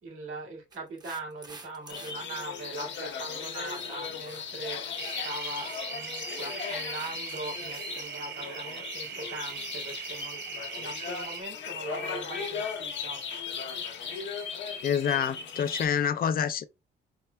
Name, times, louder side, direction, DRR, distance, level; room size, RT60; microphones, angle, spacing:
voice 1, 0.0-13.2, right 2 dB, 85° right, 2.3 m, -41 dB
sound 1, 0.7-2.1 2.4-2.5 3.7-4.0 4.2-4.5 4.7-5.2 5.5-5.9 6.1-6.5 6.9-7.5 7.9-8.0, right 3 dB, 20° right, 0.8 m, -50 dB
sound 2, 1.9-15.9, left 6 dB, 65° left, 1.0 m, -37 dB
sound 3, 5.0-11.4, right 11 dB, 55° right, 0.5 m, -40 dB
voice 2, 14.8-16.6, left 8 dB, 50° left, 0.5 m, -27 dB
4.6 x 4.0 x 2.3 m
cardioid pair, 90°, 20 cm